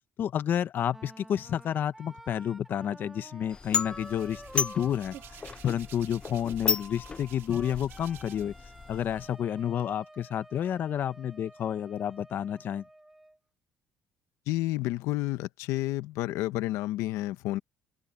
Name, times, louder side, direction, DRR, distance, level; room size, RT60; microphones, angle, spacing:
voice 1, 0.2-5.2 5.6-8.5 8.9-12.8, left 9 dB, 45° left, 0.8 m, -30 dB
Wind instrument woodwind instrument, 0.9-13.4, right 1 dB, 5° right, 1.8 m, -51 dB
sound 1, 3.5-9.3, left 5 dB, 20° left, 0.5 m, -34 dB
Hands, 3.6-8.6 8.9-9.8, right 11 dB, 55° right, 1.6 m, -52 dB
voice 2, 14.5-17.6, left 16 dB, 85° left, 1.0 m, -30 dB
open air
cardioid pair, 155°, 5 cm